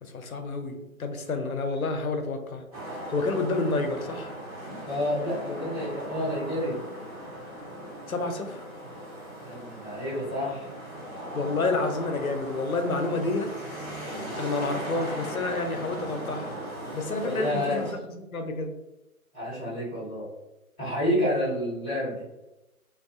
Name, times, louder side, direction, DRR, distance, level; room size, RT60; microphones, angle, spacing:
voice 1, 0.0-2.6 2.9-4.3 8.1-8.6 11.3-13.5 14.4-16.6 16.9-18.7, left 3 dB, 75° left, 6 dB, 0.6 m, -29 dB
sound 1, 2.7-17.9, right 1 dB, 25° right, 0.9 m, -38 dB
voice 2, 4.8-6.8 9.4-10.7 17.2-17.9 19.3-20.3 20.8-22.2, left 1 dB, 5° left, -12 dB, 0.7 m, -29 dB
2.3 x 2.3 x 2.4 m, 0.95 s
figure-of-eight pair, 145°, 43 cm